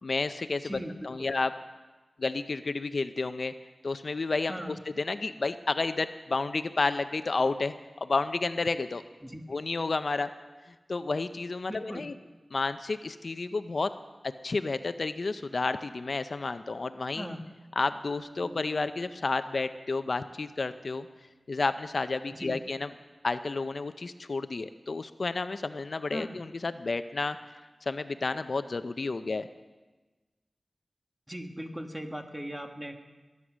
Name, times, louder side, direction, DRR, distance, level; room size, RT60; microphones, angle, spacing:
voice 1, 0.0-1.5 2.2-3.5 3.8-7.7 8.0-9.0 9.5-10.3 10.9-12.1 12.5-13.9 14.4-17.3 17.8-21.1 21.5-22.9 23.2-27.4 27.9-29.5, left 3 dB, 60° left, 11 dB, 0.5 m, -31 dB
voice 2, 0.6-1.1 4.5-4.8 9.2-9.5 11.7-12.0 17.1-17.4 22.3-22.6 26.1-26.4 31.3-33.0, equal, 10° right, 4 dB, 1.6 m, -39 dB
sound 1, 18.2-21.9, equal, 75° right, 2.2 m, -54 dB
21.5 x 9.5 x 6.2 m, 1.2 s
wide cardioid pair, 75°, 0 cm